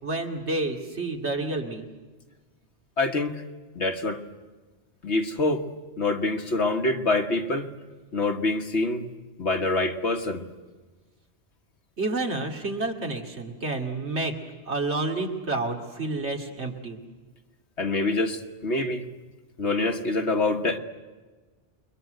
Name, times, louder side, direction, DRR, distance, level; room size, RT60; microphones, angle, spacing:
voice 1, 0.0-1.8 12.0-14.3 14.7-17.0, right 2 dB, 75° right, 3 dB, 2.7 m, -29 dB
voice 2, 3.0-3.4 3.8-4.2 5.0-5.6 6.0-7.7 8.1-9.0 9.4-10.5 17.8-19.0 19.6-20.8, left 2 dB, 80° left, 5 dB, 1.8 m, -25 dB
29.0 x 22.5 x 7.9 m, 1.3 s
omnidirectional pair, 1.1 m